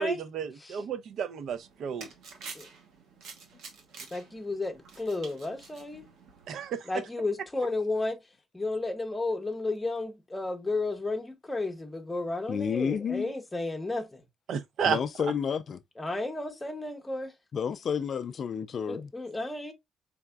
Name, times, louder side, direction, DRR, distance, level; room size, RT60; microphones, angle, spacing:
voice 1, 0.0-2.1 6.5-6.9 14.5-15.0, right 7 dB, 60° right, 0.4 m, -32 dB
sound 1, 1.5-6.7, right 5 dB, 80° right, 1.1 m, -49 dB
voice 2, 4.1-6.1 6.9-8.2 8.5-14.2 16.0-17.3 18.9-19.7, left 2 dB, 10° left, 0.8 m, -33 dB
voice 3, 12.5-13.3 14.9-15.8 17.5-19.1, left 7 dB, 40° left, 0.3 m, -30 dB
4.7 x 3.4 x 2.2 m
cardioid pair, 165°, 0 cm